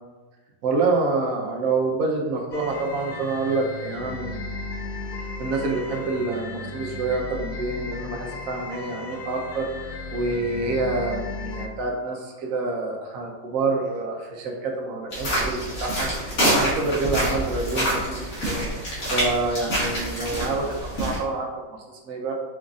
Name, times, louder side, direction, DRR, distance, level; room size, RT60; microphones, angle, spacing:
voice 1, 0.6-4.4 5.2-22.3, right 3 dB, 85° right, 0 dB, 1.1 m, -27 dB
sound 1, 2.5-11.7, left 3 dB, 65° left, 0.4 m, -35 dB
sound 2, 15.1-21.2, right 1 dB, 85° left, 2.1 m, -26 dB
5.0 x 3.9 x 2.4 m, 1.2 s
omnidirectional pair, 1.4 m